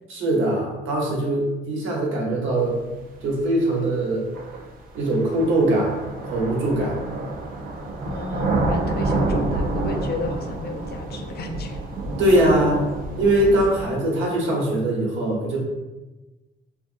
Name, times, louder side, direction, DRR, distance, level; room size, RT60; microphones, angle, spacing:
voice 1, 0.1-2.8 3.2-4.3 4.9-5.9 6.3-7.0 12.2-12.9 13.2-15.6, right 1 dB, 80° right, -2 dB, 0.8 m, -21 dB
sound 1, 3.3-3.4 4.3-13.8, right 2 dB, 45° right, 0.5 m, -28 dB
voice 2, 8.0-11.8, left 3 dB, 55° left, 4 dB, 0.4 m, -33 dB
2.6 x 2.6 x 2.5 m, 1.1 s
cardioid pair, 90°, 20 cm